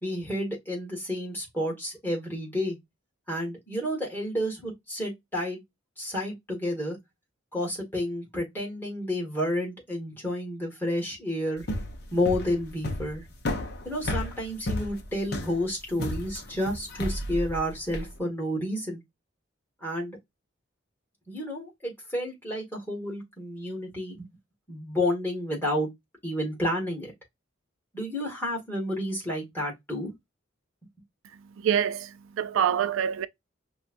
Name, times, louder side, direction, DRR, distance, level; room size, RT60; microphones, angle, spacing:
voice 1, 0.0-2.8 3.3-5.6 6.0-7.0 7.5-11.6 12.1-13.2 13.8-19.0 19.8-20.2 21.3-24.3 24.7-25.9 26.2-27.1 27.9-30.1, left 1 dB, 10° left, 1.6 m, -30 dB
sound 1, 11.6-18.1, left 1 dB, 50° left, 0.7 m, -33 dB
voice 2, 31.6-33.3, right 8 dB, 80° right, 0.4 m, -26 dB
5.4 x 2.3 x 2.5 m
head